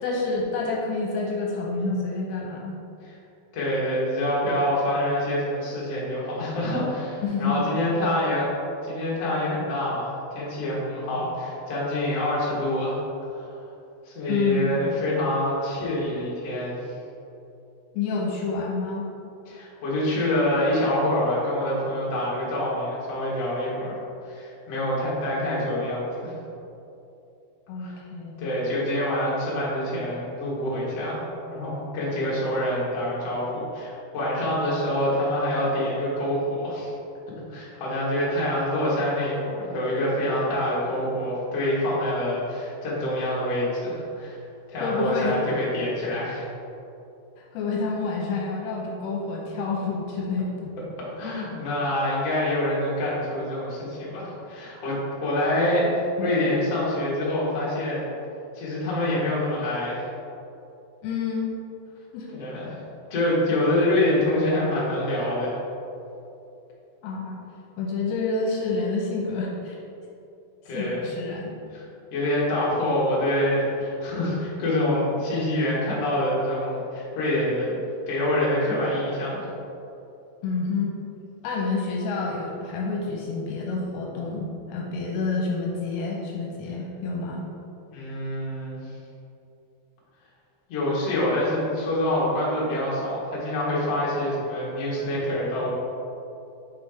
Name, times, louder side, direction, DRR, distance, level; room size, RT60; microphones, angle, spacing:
voice 1, 0.0-2.8 7.2-7.6 14.3-14.7 17.9-19.1 27.7-28.5 44.8-45.3 47.5-50.7 56.2-56.3 61.0-61.5 62.1-62.3 67.0-67.4 67.8-69.8 70.7-71.5 80.4-80.9 81.4-87.5, left 4 dB, 80° left, -2 dB, 2.8 m, -28 dB
voice 2, 3.5-8.5 8.8-13.0 13.3-13.5 14.0-16.9 19.4-24.0 24.2-26.3 27.8-27.9 28.4-36.9 37.5-44.4 44.7-46.5 51.2-58.1 58.5-60.1 62.3-62.8 63.1-65.5 70.6-71.0 71.7-71.8 72.1-79.5 87.9-88.8 90.7-95.7, left 1 dB, 60° left, -7 dB, 1.6 m, -26 dB
6.1 x 5.1 x 3.6 m, 2.8 s
omnidirectional pair, 5.3 m